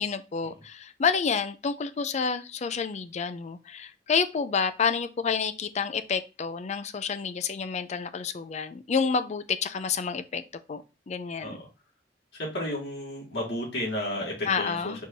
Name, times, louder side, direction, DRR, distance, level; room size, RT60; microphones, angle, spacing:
voice 1, 0.0-10.4 10.7-11.6 14.4-15.0, left 5 dB, 40° left, 0.4 m, -29 dB
voice 2, 12.4-15.0, left 1 dB, 70° left, 1.8 m, -32 dB
4.6 x 2.6 x 4.4 m
head